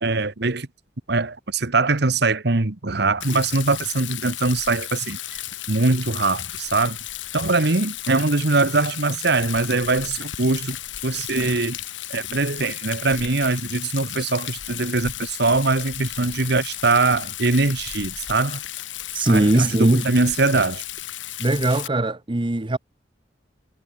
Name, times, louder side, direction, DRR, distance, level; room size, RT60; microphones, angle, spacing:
voice 1, 0.0-0.7 1.1-5.4 5.7-7.0 7.3-10.8 11.0-11.8 12.1-18.6 19.2-20.8, right 3 dB, 60° right, 1.4 m, -22 dB
Rain, 3.2-21.9, left 13 dB, 80° left, 1.8 m, -34 dB
voice 2, 19.1-20.1 21.4-22.8, right 1 dB, 25° right, 0.9 m, -20 dB
head